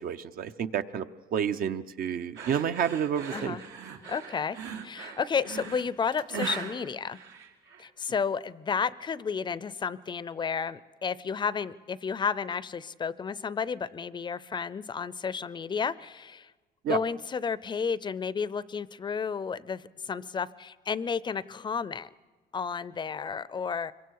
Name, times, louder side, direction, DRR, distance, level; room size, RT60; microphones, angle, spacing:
voice 1, 0.0-3.6 16.8-17.0, right 8 dB, 60° right, 9 dB, 0.8 m, -30 dB
sound 1, 2.4-7.9, right 6 dB, 85° right, 2.5 m, -40 dB
voice 2, 3.3-3.6 4.1-7.2 7.8-16.5 16.9-22.1 22.5-23.9, left 6 dB, 25° left, 18 dB, 0.6 m, -32 dB
25.5 x 23.0 x 4.7 m, 1.3 s
cardioid pair, 110°, 17 cm